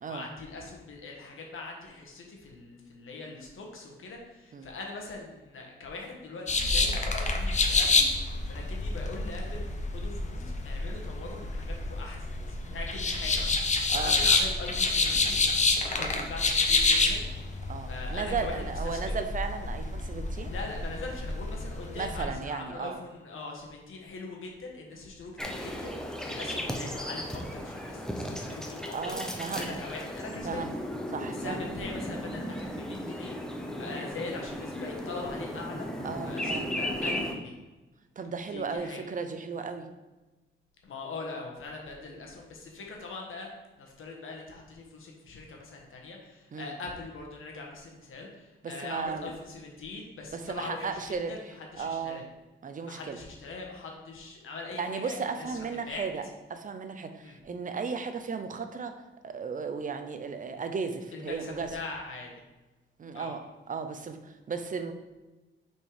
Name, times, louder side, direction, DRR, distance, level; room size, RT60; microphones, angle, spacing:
voice 1, 0.1-8.1 8.5-17.2 17.9-19.0 20.4-29.2 29.5-30.6 31.3-33.3 33.8-35.9 36.2-37.5 38.5-39.0 40.8-43.5 43.8-51.0 51.3-52.2 52.8-56.1 57.2-57.4 61.1-62.4 63.1-63.3, left 3 dB, 80° left, 0 dB, 1.5 m, -42 dB
sound 1, 6.5-22.3, left 3 dB, 35° left, 0.7 m, -28 dB
voice 2, 16.0-16.3 17.7-20.5 21.9-23.0 28.9-29.7 30.4-30.7 31.1-31.6 36.0-36.7 38.2-39.9 46.5-46.7 48.6-49.3 50.3-52.2 52.6-53.2 54.7-56.2 56.5-58.9 59.2-61.8 63.0-64.9, right 5 dB, 40° right, 8 dB, 0.6 m, -35 dB
sound 2, 25.4-37.3, equal, 5° left, 0.7 m, -36 dB
6.1 x 4.5 x 4.9 m, 1.1 s
wide cardioid pair, 140°, 21 cm